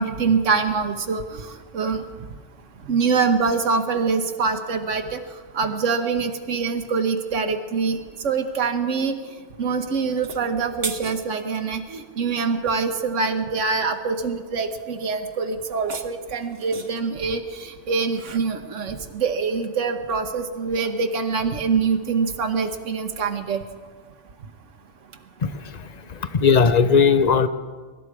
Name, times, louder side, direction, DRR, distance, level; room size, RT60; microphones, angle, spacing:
voice 1, 0.0-2.0 2.9-5.2 5.5-8.0 8.2-9.1 9.6-23.6, right 5 dB, 90° right, 6 dB, 1.3 m, -24 dB
sound 1, 10.1-11.7 15.6-17.1, right 5 dB, 60° right, 1.3 m, -36 dB
voice 2, 25.4-27.5, left 5 dB, 40° left, 12 dB, 0.8 m, -19 dB
23.5 x 12.5 x 4.8 m, 1.5 s
omnidirectional pair, 1.2 m